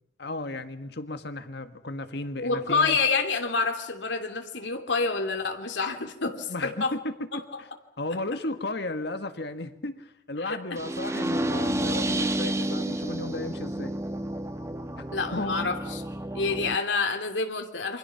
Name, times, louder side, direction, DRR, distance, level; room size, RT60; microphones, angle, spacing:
voice 1, 0.2-3.0 6.5-7.4 8.0-14.0 15.0-15.1 15.3-15.7, left 2 dB, 65° left, 9 dB, 1.8 m, -34 dB
voice 2, 2.4-6.9 7.3-7.4 10.4-10.6 15.1-16.0 16.3-18.0, left 4 dB, 90° left, 5 dB, 2.9 m, -28 dB
sound 1, 10.8-16.8, right 1 dB, 15° right, 1.2 m, -30 dB
28.0 x 24.5 x 5.9 m, 0.82 s
head